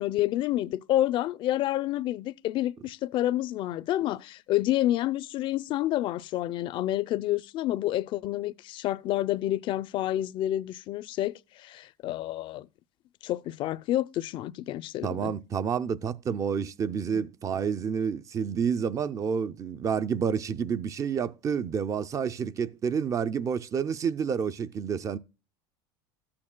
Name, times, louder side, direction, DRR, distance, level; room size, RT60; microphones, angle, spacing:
voice 1, 0.0-12.7 13.2-15.3 17.1-17.2, left 14 dB, 50° left, 0.5 m, -29 dB
voice 2, 15.0-25.2, right 7 dB, 30° right, 0.5 m, -29 dB
14.0 x 8.6 x 2.2 m
supercardioid pair, 115°, 11 cm